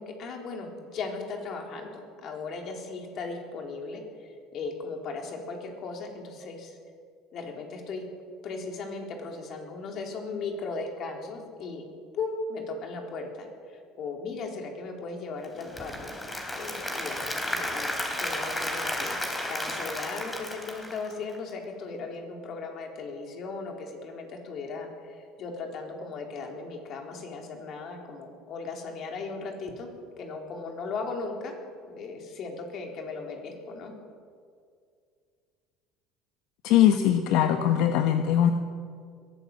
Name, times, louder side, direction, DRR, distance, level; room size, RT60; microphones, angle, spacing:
voice 1, 0.0-6.8 7.3-8.1 8.4-11.9 12.1-16.2 16.5-17.9 18.2-29.9 30.2-31.5 31.9-33.9, left 4 dB, 45° left, 2 dB, 4.2 m, -37 dB
Applause / Crowd, 15.4-21.5, left 1 dB, 10° left, 3.5 m, -33 dB
voice 2, 36.6-38.5, left 10 dB, 70° left, 6 dB, 1.2 m, -21 dB
22.0 x 16.0 x 8.0 m, 2.2 s
cardioid pair, 130°, 0 cm